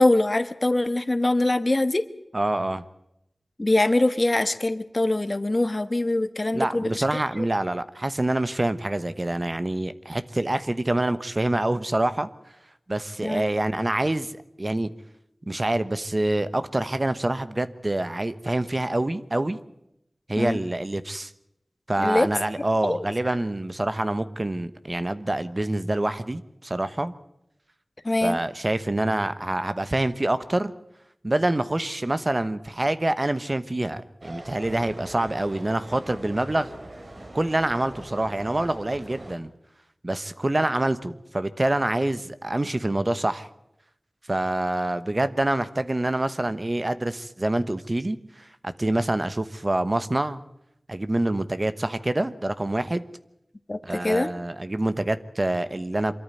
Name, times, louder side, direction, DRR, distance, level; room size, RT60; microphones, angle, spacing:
voice 1, 0.0-2.1 3.6-7.0 7.4-7.5 13.2-13.4 20.4-20.6 22.0-22.3 22.6-23.3 28.0-28.4 53.7-54.3, left 2 dB, 45° left, 12 dB, 1.4 m, -23 dB
voice 2, 2.3-2.8 6.5-12.3 12.9-14.9 15.5-19.6 20.3-21.3 21.9-27.1 28.2-30.7 31.2-36.7 37.3-39.5 40.0-43.5 44.3-50.4 50.9-53.0 53.8-56.1, right 1 dB, 40° right, 13 dB, 1.1 m, -26 dB
sound 1, 34.2-39.4, right 1 dB, 65° right, 3.4 m, -42 dB
24.5 x 13.5 x 9.1 m, 0.81 s
wide cardioid pair, 50°, 0 cm